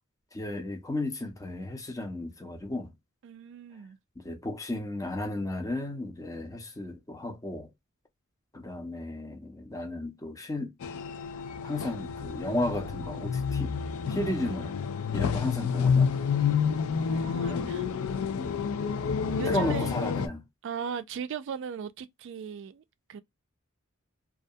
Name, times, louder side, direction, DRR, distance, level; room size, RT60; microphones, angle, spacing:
voice 1, 0.3-2.9 4.2-7.7 8.5-10.7 11.6-13.7 14.1-14.7 15.1-16.1 17.5-17.7 18.3-18.6 19.4-20.4, left 1 dB, 15° left, 0.5 m, -34 dB
voice 2, 3.2-4.0 17.0-17.9 19.4-20.0 20.6-22.8 23.1-23.2, right 7 dB, 60° right, 0.3 m, -38 dB
sound 1, 10.8-20.3, left 6 dB, 85° left, 0.4 m, -29 dB
2.3 x 2.2 x 2.6 m
head